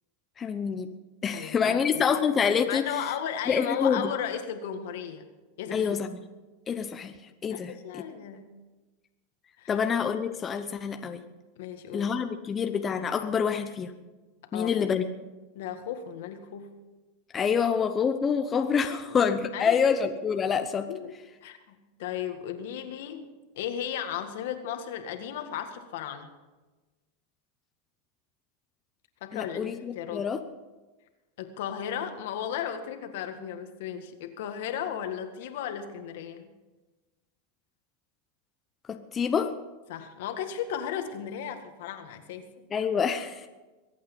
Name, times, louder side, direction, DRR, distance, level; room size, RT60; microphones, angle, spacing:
voice 1, 0.4-0.9 1.2-3.1 3.5-4.1 5.7-6.1 6.7-7.1 7.4-8.0 9.7-11.2 11.9-13.9 14.5-15.0 17.3-20.9 29.3-30.4 38.9-39.5 42.7-43.5, left 6 dB, 25° left, 7 dB, 0.8 m, -27 dB
voice 2, 1.3-2.1 2.7-5.2 5.6-6.0 7.5-8.6 9.6-9.7 11.6-12.1 14.5-14.7 15.5-16.8 18.8-19.2 19.5-19.9 20.8-21.1 21.4-26.3 29.2-30.3 31.4-36.5 39.9-42.5, left 9 dB, 70° left, 7 dB, 1.8 m, -35 dB
23.0 x 8.6 x 5.5 m, 1.2 s
supercardioid pair, 125°, 0 cm